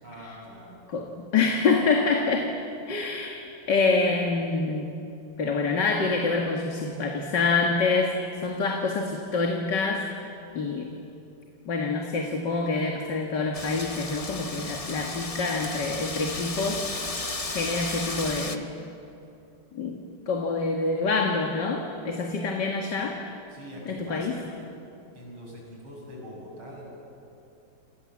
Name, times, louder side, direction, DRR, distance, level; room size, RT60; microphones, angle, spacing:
voice 1, 0.0-0.8 23.5-24.5 25.1-26.9, equal, 80° right, -2 dB, 7.8 m, -43 dB
voice 2, 0.9-2.5 2.9-3.4 3.7-4.9 5.4-8.1 8.4-10.1 10.5-10.9 11.7-16.9 17.5-18.7 19.7-20.0 20.3-23.2 23.9-24.4, left 4 dB, 55° left, 2 dB, 2.4 m, -26 dB
Wind, 13.5-18.6, left 3 dB, 20° left, 1.0 m, -34 dB
28.5 x 28.0 x 7.4 m, 2.8 s
omnidirectional pair, 2.3 m